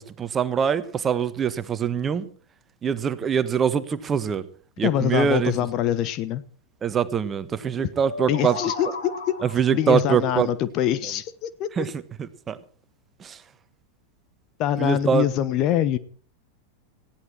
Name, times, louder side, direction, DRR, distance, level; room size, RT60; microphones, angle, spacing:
voice 1, 0.0-2.3 2.8-4.5 4.8-5.5 6.8-8.6 8.8-8.9 9.4-10.5 11.0-11.1 11.7-12.6 13.2-13.4 14.8-15.3, right 7 dB, 20° right, 12 dB, 1.5 m, -24 dB
voice 2, 4.8-6.4 8.3-9.4 9.7-11.9 14.6-16.0, left 11 dB, 40° left, 15 dB, 1.0 m, -24 dB
sound 1, 8.0-9.8, left 3 dB, 60° left, 4.1 m, -34 dB
19.5 x 15.5 x 4.5 m, 0.43 s
figure-of-eight pair, 90°, 0 cm